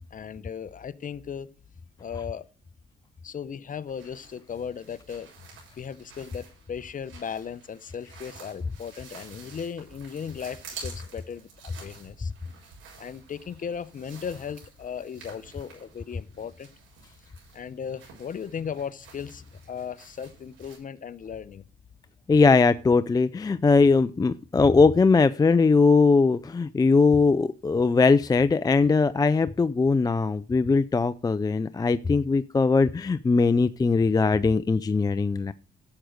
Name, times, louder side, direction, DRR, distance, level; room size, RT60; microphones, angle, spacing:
voice 1, 0.1-1.5 2.0-2.4 3.2-5.5 5.7-12.3 13.0-16.7 17.5-21.6, left 7 dB, 40° left, 0.8 m, -37 dB
sound 1, 3.8-20.8, right 5 dB, 85° right, 7.1 m, -49 dB
voice 2, 22.3-35.5, left 4 dB, 20° left, 0.4 m, -20 dB
11.5 x 7.8 x 5.1 m
cardioid pair, 90°, 20 cm